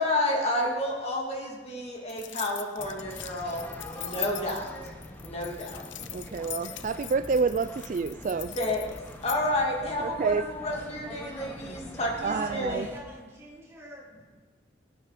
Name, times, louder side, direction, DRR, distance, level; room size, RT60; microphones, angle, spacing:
voice 1, 0.0-4.7 5.2-5.8 8.6-8.9 9.2-12.8, left 1 dB, 35° left, -1 dB, 2.4 m, -30 dB
sound 1, 2.1-9.4, left 14 dB, 75° left, 0.6 m, -41 dB
sound 2, 2.8-13.0, left 1 dB, 10° left, 1.1 m, -44 dB
voice 2, 6.1-8.5 10.2-10.4 12.2-12.5, right 4 dB, 40° right, 12 dB, 0.3 m, -28 dB
voice 3, 12.3-14.2, equal, 15° right, -4 dB, 2.9 m, -42 dB
21.0 x 8.9 x 5.1 m, 1.4 s
head